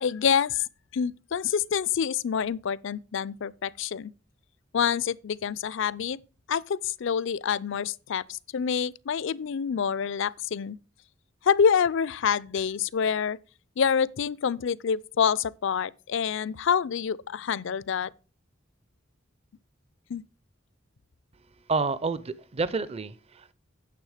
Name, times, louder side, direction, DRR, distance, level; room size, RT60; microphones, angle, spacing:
voice 1, 0.0-0.7 0.9-4.1 4.7-6.2 6.5-10.8 11.4-13.4 13.8-18.1 20.1-20.2, left 7 dB, 65° left, 0.4 m, -27 dB
voice 2, 21.7-23.5, right 4 dB, 30° right, 0.5 m, -29 dB
9.4 x 6.9 x 4.9 m
head